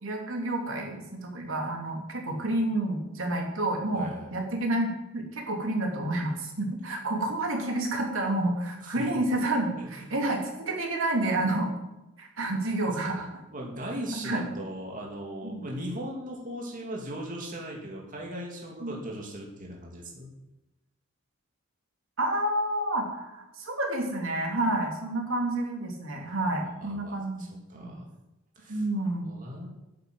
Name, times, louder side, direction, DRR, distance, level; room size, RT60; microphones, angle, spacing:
voice 1, 0.0-11.7 12.2-13.3 14.1-14.5 15.4-15.6 18.8-18.9 22.2-27.4 27.7-28.0 28.7-29.3, right 1 dB, 85° right, 1 dB, 3.1 m, -29 dB
voice 2, 3.9-4.3 8.8-8.9 9.8-10.1 12.8-13.1 13.5-20.3 26.8-28.0 28.6-28.8 29.2-29.7, equal, 40° right, -1 dB, 2.7 m, -38 dB
10.0 x 8.8 x 8.0 m, 0.96 s
head